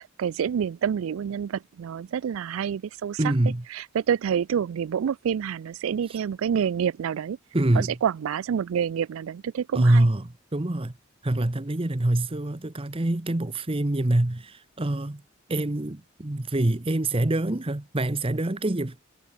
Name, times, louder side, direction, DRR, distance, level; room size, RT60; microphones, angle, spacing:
voice 1, 0.0-3.2 3.7-7.4 7.8-10.1, right 8 dB, 85° right, 0.3 m, -28 dB
voice 2, 3.2-3.6 6.1-6.2 7.5-8.0 9.7-10.9 11.2-15.2 15.5-19.0, right 1 dB, 25° right, 0.9 m, -25 dB
head